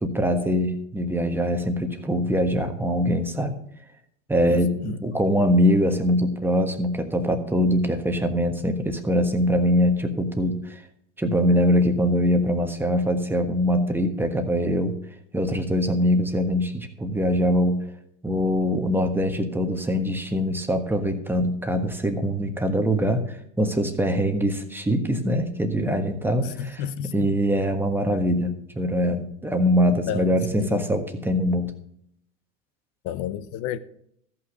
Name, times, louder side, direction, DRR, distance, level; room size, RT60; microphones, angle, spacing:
voice 1, 0.0-3.5 4.3-10.8 11.2-14.9 15.3-17.8 18.2-26.8 27.1-31.7, equal, 5° right, 1.4 m, -23 dB
voice 2, 4.5-5.0 26.4-27.3 30.1-30.9 33.0-33.8, left 10 dB, 45° left, 0.9 m, -32 dB
14.0 x 5.8 x 6.2 m
hypercardioid pair, 110°, 40 cm